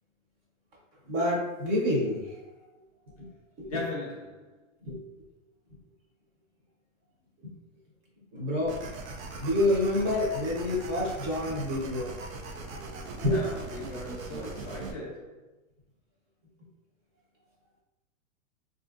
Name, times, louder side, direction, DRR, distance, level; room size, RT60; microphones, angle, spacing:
voice 1, 1.0-2.4 3.1-3.3 3.6-3.8 4.8-5.0 7.4-7.5 8.3-8.8 9.4-12.2 13.2-13.4, left 1 dB, 25° right, 0.7 m, -28 dB
voice 2, 3.7-4.6 13.1-15.4, left 2 dB, 30° left, 0.4 m, -38 dB
sound 1, 8.6-14.9, right 3 dB, 75° right, 0.6 m, -40 dB
3.7 x 2.5 x 2.4 m
supercardioid pair, 165°, 41 cm